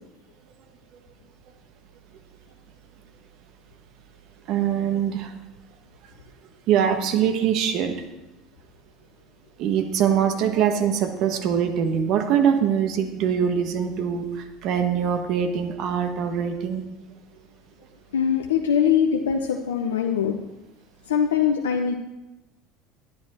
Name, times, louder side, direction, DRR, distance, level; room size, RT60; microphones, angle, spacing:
voice 1, 4.5-5.3 6.7-7.9 9.6-16.8, right 8 dB, 60° right, 6 dB, 1.3 m, -23 dB
voice 2, 18.1-20.4 21.1-21.9, left 8 dB, 85° left, 3 dB, 0.7 m, -22 dB
10.5 x 10.5 x 4.4 m, 1.0 s
hypercardioid pair, 75°, 0 cm